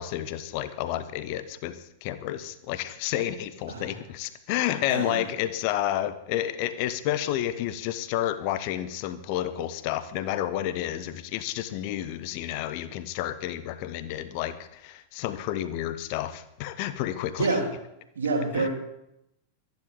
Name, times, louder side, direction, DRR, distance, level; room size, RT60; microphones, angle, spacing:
voice 1, 0.0-17.5 18.6-18.7, left 12 dB, 45° left, 13 dB, 1.0 m, -30 dB
voice 2, 3.7-4.0 4.9-5.2 17.4-17.7 18.1-18.7, right 3 dB, 65° right, 1 dB, 3.3 m, -27 dB
24.0 x 10.5 x 3.6 m, 0.81 s
figure-of-eight pair, 90°, 0 cm